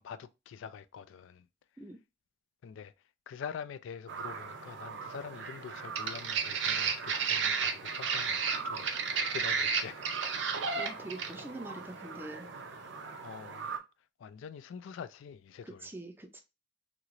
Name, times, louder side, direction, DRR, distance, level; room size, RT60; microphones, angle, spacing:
voice 1, 0.0-1.5 2.6-2.9 3.3-10.1 13.2-13.7 14.2-15.9, left 7 dB, 80° left, 0.3 m, -45 dB
sound 1, 4.1-13.8, right 5 dB, 65° right, 0.5 m, -34 dB
voice 2, 10.8-12.5 15.6-16.4, right 1 dB, 10° right, 0.4 m, -44 dB
3.0 x 2.8 x 2.5 m
head